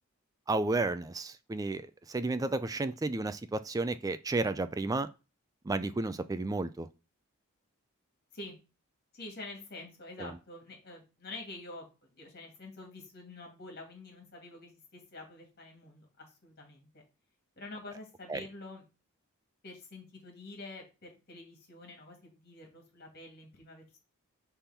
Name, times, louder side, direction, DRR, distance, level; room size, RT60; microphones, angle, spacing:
voice 1, 0.5-5.1 5.6-6.9 10.2-10.3 18.3-18.4, right 2 dB, 15° right, 0.3 m, -32 dB
voice 2, 9.1-17.0 17.6-18.8 19.6-24.0, left 2 dB, 45° left, 2.3 m, -47 dB
5.9 x 3.5 x 5.6 m
head